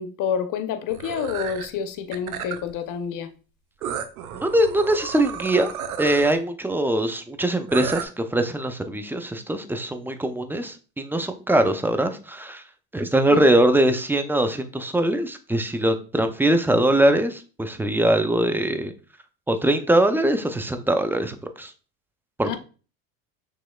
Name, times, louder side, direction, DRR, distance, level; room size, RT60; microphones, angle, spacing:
voice 1, 0.0-3.3 13.3-13.6 22.4-22.6, left 7 dB, 50° left, 0.8 m, -28 dB
sound 1, 0.9-1.7 2.1-2.7 3.8-6.3 7.7-8.0, right 8 dB, 85° right, 0.6 m, -33 dB
voice 2, 4.3-5.7 6.0-12.6 12.9-18.9 19.5-21.7 22.4-22.6, right 1 dB, 5° right, 0.5 m, -22 dB
6.1 x 3.1 x 2.3 m
hypercardioid pair, 70°, 42 cm